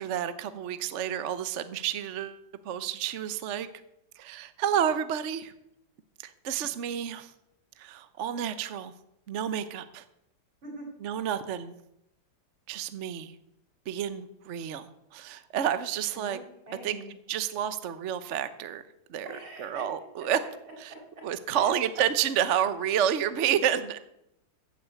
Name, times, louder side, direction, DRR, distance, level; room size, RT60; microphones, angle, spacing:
voice 1, 0.0-2.4 2.6-3.7 4.2-5.5 6.2-7.3 7.8-8.9 9.3-10.0 11.0-11.8 12.7-13.4 13.9-16.4 16.8-17.0 17.3-18.8 19.1-19.3 19.6-20.4 20.8-20.9 21.2-24.0, right 9 dB, 50° right, 12 dB, 0.9 m, -30 dB
voice 2, 16.1-17.1 19.2-19.8 21.5-21.8, right 2 dB, 85° right, -1 dB, 6.2 m, -43 dB
14.5 x 9.7 x 8.1 m, 0.82 s
omnidirectional pair, 2.2 m